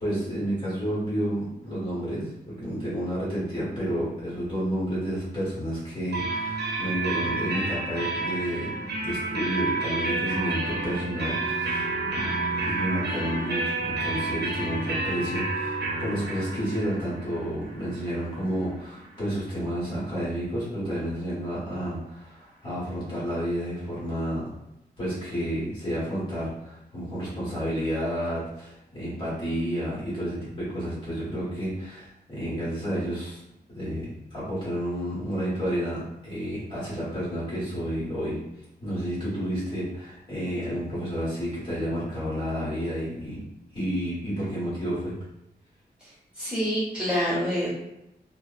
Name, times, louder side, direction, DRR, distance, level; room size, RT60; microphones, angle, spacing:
voice 1, 0.0-12.3 12.6-24.4 25.0-33.4 33.7-38.4 38.8-43.4 43.7-45.1, equal, 30° left, -10 dB, 1.4 m, -30 dB
sound 1, 6.1-19.7, right 2 dB, 80° right, 0.7 m, -30 dB
voice 2, 46.4-47.7, equal, 5° right, -11 dB, 1.4 m, -26 dB
3.2 x 2.1 x 2.5 m, 0.86 s
wide cardioid pair, 135°, 17 cm